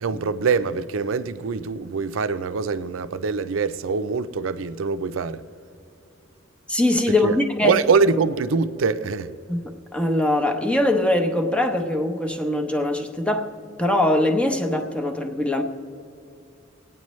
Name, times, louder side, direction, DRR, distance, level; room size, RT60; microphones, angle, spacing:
voice 1, 0.0-5.4 7.2-7.4 7.6-9.3, right 4 dB, 85° right, 0.5 m, -23 dB
voice 2, 6.7-7.8 9.5-13.5 13.8-15.6, left 1 dB, 5° left, 0.8 m, -22 dB
21.5 x 9.1 x 3.1 m
head